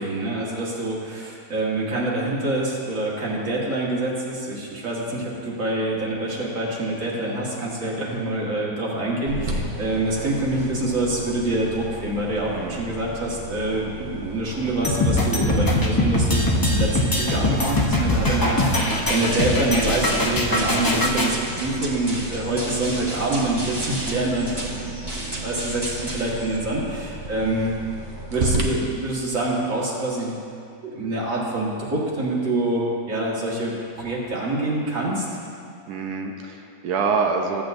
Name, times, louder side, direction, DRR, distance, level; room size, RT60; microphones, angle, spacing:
voice 1, 0.0-16.4 16.7-27.7 28.3-30.4 30.8-35.2, right 2 dB, 60° right, -4 dB, 1.9 m, -26 dB
sound 1, 9.3-28.6, right 2 dB, 40° right, 0.8 m, -35 dB
voice 2, 12.5-12.9 35.9-37.6, right 5 dB, 85° right, 2 dB, 1.2 m, -26 dB
sound 2, 14.8-21.3, left 1 dB, 25° left, 0.5 m, -22 dB
sound 3, 18.6-26.6, right 2 dB, 15° right, 1.1 m, -33 dB
14.5 x 8.4 x 2.6 m, 2.5 s
omnidirectional pair, 1.6 m